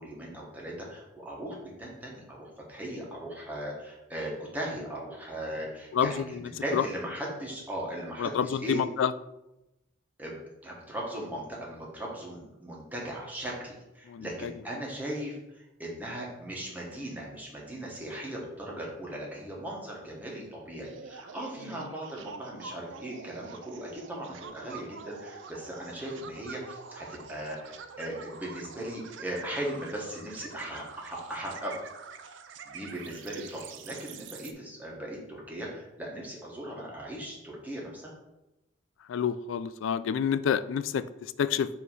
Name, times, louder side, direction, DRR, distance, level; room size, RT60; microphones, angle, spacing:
voice 1, 0.0-8.8 10.2-10.3 10.6-31.8 32.6-38.1, right 1 dB, 10° right, -4 dB, 1.3 m, -38 dB
voice 2, 5.9-6.8 8.2-9.1 14.1-14.5 39.1-41.7, left 7 dB, 70° left, 14 dB, 0.3 m, -29 dB
sound 1, 20.8-34.5, right 5 dB, 60° right, 0.4 m, -46 dB
5.6 x 3.1 x 5.5 m, 0.94 s
head